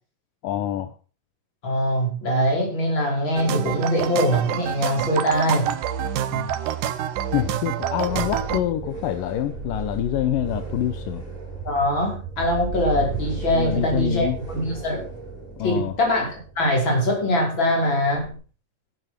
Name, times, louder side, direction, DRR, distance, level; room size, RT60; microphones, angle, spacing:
voice 1, 0.4-0.9 6.3-6.5 7.3-11.2 13.5-14.4 15.6-15.9, left 12 dB, 80° left, 10 dB, 2.5 m, -26 dB
voice 2, 1.6-5.7 11.6-15.0 15.6-18.4, equal, 35° left, 0 dB, 5.7 m, -22 dB
sound 1, 3.4-8.6, right 10 dB, 75° right, 2.6 m, -27 dB
sound 2, 8.0-18.3, right 3 dB, 10° right, 6.7 m, -35 dB
12.0 x 10.0 x 6.1 m, 0.36 s
omnidirectional pair, 3.9 m